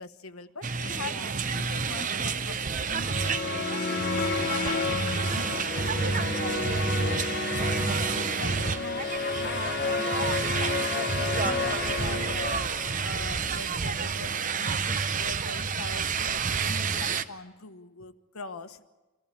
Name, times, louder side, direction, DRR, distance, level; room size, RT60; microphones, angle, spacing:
voice 1, 0.0-6.1 8.1-12.6 13.0-18.8, left 3 dB, 85° left, 1.2 m, -42 dB
sound 1, 0.6-17.2, right 5 dB, 35° right, 0.7 m, -30 dB
voice 2, 0.9-1.4 5.8-7.3 12.0-12.5, right 4 dB, 70° right, 0.7 m, -41 dB
sound 2, 2.9-13.3, left 4 dB, 45° left, 1.0 m, -31 dB
sound 3, 11.4-13.0, left 1 dB, 5° left, 0.7 m, -43 dB
26.0 x 15.0 x 9.9 m
head